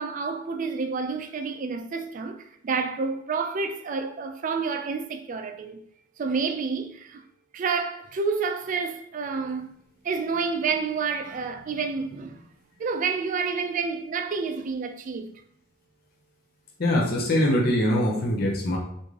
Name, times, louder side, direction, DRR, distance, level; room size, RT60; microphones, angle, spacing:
voice 1, 0.0-5.8 6.2-7.2 7.5-9.7 10.0-12.5 12.8-15.3, right 5 dB, 40° right, 0.3 m, -29 dB
voice 2, 16.8-18.8, left 1 dB, 50° left, 0.7 m, -23 dB
3.6 x 2.5 x 3.1 m
head